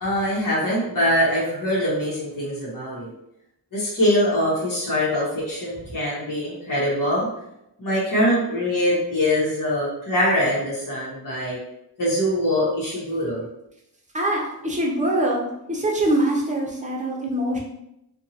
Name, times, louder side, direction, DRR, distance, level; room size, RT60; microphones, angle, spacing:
voice 1, 0.0-3.1 3.7-7.3 7.8-11.6 12.0-13.5, equal, 55° left, -7 dB, 1.0 m, -23 dB
voice 2, 14.1-15.4 15.7-17.6, right 1 dB, 20° right, -2 dB, 0.7 m, -23 dB
2.6 x 2.2 x 2.8 m, 0.83 s
wide cardioid pair, 55°, 39 cm